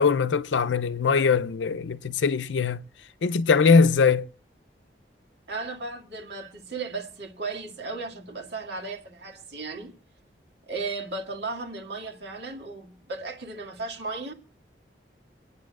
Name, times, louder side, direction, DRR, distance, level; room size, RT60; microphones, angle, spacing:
voice 1, 0.0-2.8 3.2-4.3, left 5 dB, 90° left, 0.5 m, -21 dB
voice 2, 5.5-9.9 10.7-14.3, right 3 dB, 70° right, 2.0 m, -35 dB
26.5 x 9.5 x 2.4 m
head